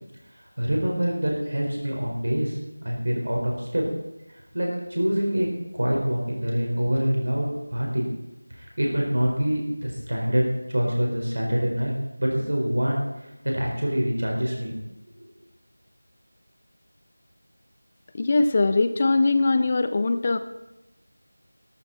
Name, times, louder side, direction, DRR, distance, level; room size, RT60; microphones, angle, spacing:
voice 1, 0.6-2.6 2.8-3.8 4.5-5.5 5.7-8.0 8.8-11.9 12.2-13.0 13.5-14.8 15.2-15.3, equal, 55° right, -1 dB, 4.6 m, -25 dB
voice 2, 18.1-20.4, left 3 dB, 25° left, 10 dB, 0.5 m, -21 dB
16.5 x 13.5 x 4.2 m, 0.97 s
figure-of-eight pair, 175°, 0 cm